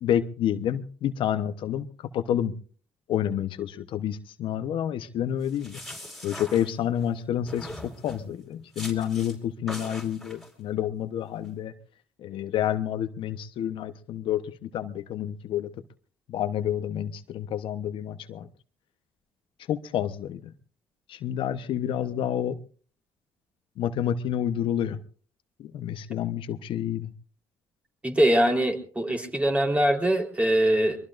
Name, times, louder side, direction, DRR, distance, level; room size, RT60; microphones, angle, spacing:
voice 1, 0.0-2.5 3.1-5.8 6.2-11.7 12.2-15.7 16.3-18.5 19.7-20.5 21.1-22.6 23.8-25.0 25.6-27.1, left 10 dB, 65° left, 9 dB, 1.0 m, -29 dB
sound 1, 5.4-7.1 7.5-8.3 8.7-9.4 9.7-10.5, left 1 dB, ahead, 4.6 m, -41 dB
voice 2, 28.0-31.0, right 1 dB, 15° right, 3 dB, 3.8 m, -22 dB
23.0 x 22.5 x 2.6 m, 0.43 s
supercardioid pair, 75°, 9 cm